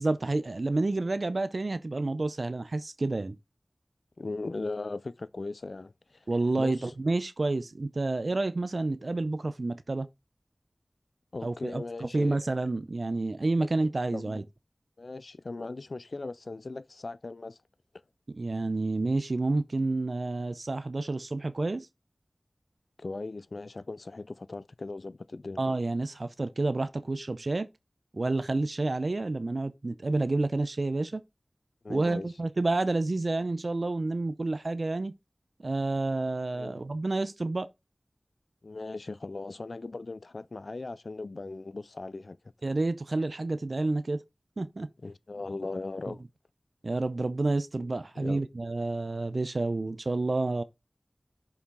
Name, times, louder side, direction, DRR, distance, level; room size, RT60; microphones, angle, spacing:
voice 1, 0.0-3.4 6.3-10.1 11.4-11.8 12.1-14.4 18.3-21.9 25.6-27.7 28.1-31.2 31.9-35.1 35.6-37.7 42.6-44.2 44.6-44.9 46.8-50.6, right 2 dB, 65° right, 0.5 m, -29 dB
voice 2, 4.2-6.3 6.6-6.9 11.3-12.4 13.6-13.7 14.1-14.4 15.0-17.6 23.0-25.6 31.8-32.3 36.5-36.8 38.6-42.4 45.0-46.2 48.2-48.4, left 3 dB, 70° left, 0.4 m, -38 dB
6.4 x 5.8 x 3.8 m
wide cardioid pair, 45°, 0 cm